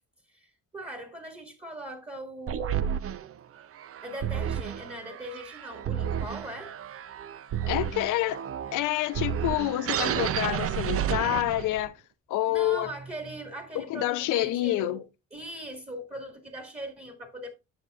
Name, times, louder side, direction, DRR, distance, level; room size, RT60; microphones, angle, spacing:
voice 1, 0.3-2.9 4.0-6.7 12.5-15.0 15.3-17.5, right 1 dB, 20° right, 1.8 m, -40 dB
sound 1, 2.5-11.9, right 9 dB, 50° right, 0.5 m, -31 dB
voice 2, 7.7-8.4 8.7-11.9 12.3-12.9 13.7-15.0, left 15 dB, 90° left, 0.7 m, -27 dB
9.5 x 7.0 x 2.4 m
cardioid pair, 90°, 30 cm